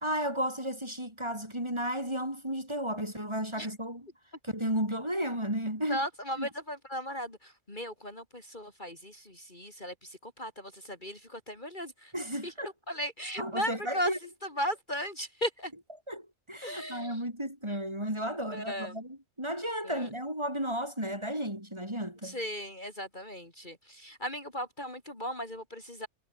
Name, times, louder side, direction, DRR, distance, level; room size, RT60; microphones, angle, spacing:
voice 1, 0.0-4.1 4.4-6.1 6.4-6.5 12.1-12.7 13.4-14.2 16.1-22.4, equal, 15° right, 7.0 m, -33 dB
voice 2, 5.9-9.9 10.2-12.1 12.4-12.5 12.9-14.1 14.6-15.7 16.6-17.2 18.5-18.9 19.9-20.1 22.2-26.1, equal, 30° left, 4.2 m, -36 dB
omnidirectional pair, 1.6 m